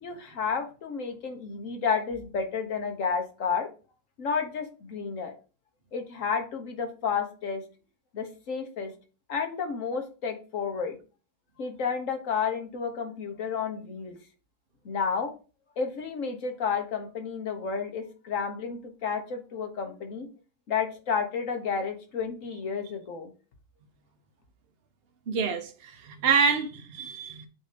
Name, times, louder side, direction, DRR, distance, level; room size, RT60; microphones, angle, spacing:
voice 1, 0.0-3.7 4.2-5.3 5.9-7.6 8.1-8.9 9.3-11.0 11.6-14.2 14.8-15.3 15.8-20.3 20.7-23.3, left 6 dB, 60° left, 1.4 m, -31 dB
voice 2, 25.3-27.5, right 5 dB, 50° right, 0.8 m, -27 dB
7.6 x 2.8 x 5.0 m
omnidirectional pair, 1.5 m